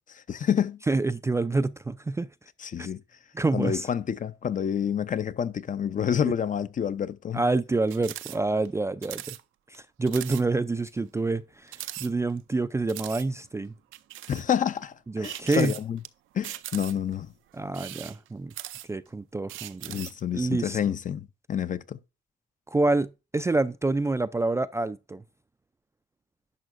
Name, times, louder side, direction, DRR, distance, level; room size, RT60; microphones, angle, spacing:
voice 1, 0.1-0.8 2.6-3.0 3.5-7.4 14.3-16.0 16.3-17.3 19.9-22.0, left 8 dB, 40° left, 0.6 m, -28 dB
voice 2, 0.9-2.3 2.8-2.9 3.3-3.9 7.3-9.4 9.7-13.7 15.1-15.7 17.5-18.5 18.9-20.0 20.3-20.8 22.7-25.2, right 3 dB, 15° right, 0.3 m, -27 dB
sound 1, 7.9-8.4 8.6-8.7 9.0-9.4 9.7-9.8 10.1-10.4 10.9-11.0 11.7-12.5 12.9-13.3 13.9-14.5 15.2-16.1 16.4-17.1 17.7-19.1 19.5-20.2, right 14 dB, 85° right, 0.5 m, -39 dB
11.0 x 5.7 x 2.5 m
cardioid pair, 90°, 20 cm